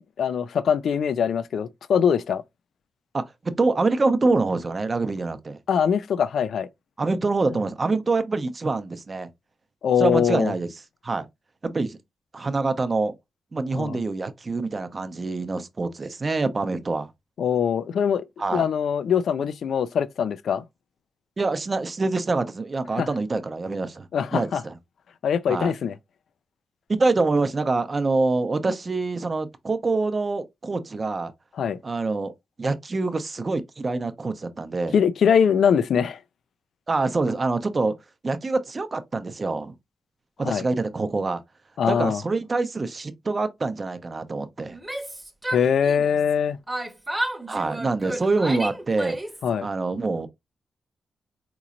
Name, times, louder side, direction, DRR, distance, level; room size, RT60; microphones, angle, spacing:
voice 1, 0.0-2.4 5.7-6.7 9.8-10.5 13.7-14.0 17.4-18.2 18.5-20.6 23.0-23.1 24.1-24.6 25.2-25.9 31.6-31.8 34.9-36.2 40.4-40.6 41.8-42.2 45.5-46.6 49.4-49.7, left 7 dB, 75° left, 0.3 m, -22 dB
voice 2, 3.6-5.6 7.0-9.3 10.0-10.7 11.0-11.3 11.6-12.0 12.3-13.1 13.5-17.1 18.4-18.7 21.4-24.8 25.5-25.7 26.9-31.3 31.8-32.3 32.6-35.0 36.9-37.9 38.2-39.7 40.4-41.4 41.9-44.8 47.5-49.2 49.6-50.3, right 3 dB, 40° right, 0.6 m, -25 dB
Yell, 44.7-46.3 46.7-49.5, right 1 dB, 10° right, 0.9 m, -32 dB
4.0 x 3.0 x 2.5 m
cardioid pair, 65°, 0 cm